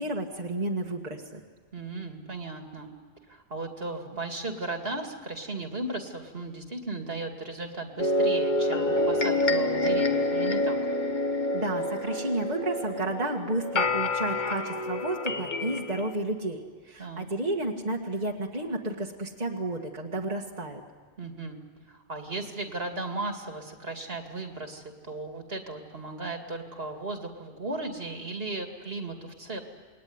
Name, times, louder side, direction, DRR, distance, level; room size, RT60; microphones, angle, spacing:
voice 1, 0.0-1.4 11.5-16.6 16.9-20.8, right 2 dB, 35° right, -1 dB, 2.0 m, -31 dB
voice 2, 1.7-2.9 3.3-10.8 17.0-17.3 21.2-21.6 21.9-29.6, right 2 dB, 50° right, 4 dB, 2.5 m, -36 dB
sound 1, 8.0-16.1, left 1 dB, 40° left, 1.3 m, -27 dB
28.0 x 21.5 x 9.6 m, 1.5 s
omnidirectional pair, 1.3 m